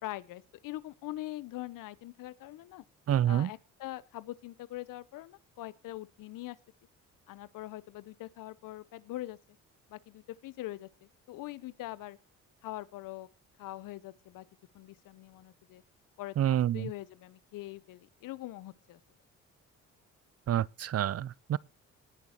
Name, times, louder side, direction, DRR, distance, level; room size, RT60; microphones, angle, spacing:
voice 1, 0.0-2.8 3.2-6.6 7.3-9.4 9.9-12.2 12.6-13.3 13.6-14.5 14.7-15.8 16.2-19.0, left 16 dB, 85° left, 0.9 m, -43 dB
voice 2, 3.1-3.5 16.4-16.9 20.5-21.6, right 11 dB, 50° right, 0.6 m, -28 dB
18.5 x 6.6 x 4.5 m
cardioid pair, 80°, 32 cm